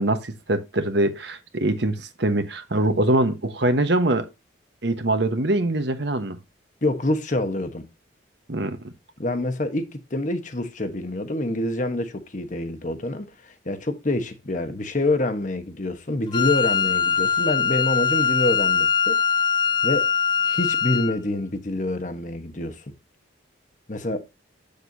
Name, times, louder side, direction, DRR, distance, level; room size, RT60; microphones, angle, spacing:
voice 1, 0.0-4.3 4.8-6.4 8.5-8.9, right 1 dB, 60° right, 1.2 m, -23 dB
voice 2, 6.8-7.9 9.2-19.2 19.8-20.1 20.4-22.8 23.9-24.2, left 2 dB, 40° left, 1.1 m, -26 dB
Wind instrument woodwind instrument, 16.3-21.2, left 7 dB, 25° left, 0.5 m, -22 dB
8.3 x 6.7 x 2.7 m
head